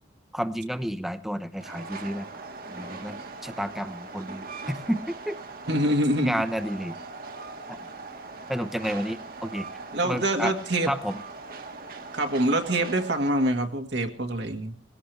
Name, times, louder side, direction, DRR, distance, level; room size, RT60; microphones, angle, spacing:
voice 1, 0.3-2.3 2.7-3.2 3.4-5.4 6.2-7.0 7.7-7.9 8.5-9.7 10.0-10.5 10.9-11.2, equal, ahead, 11 dB, 0.9 m, -31 dB
Train, 1.5-13.5, right 3 dB, 50° right, 1.6 m, -40 dB
voice 2, 5.7-6.3 9.9-10.9 12.1-14.7, right 1 dB, 65° right, 4 dB, 1.7 m, -25 dB
19.5 x 16.5 x 3.4 m, 0.42 s
head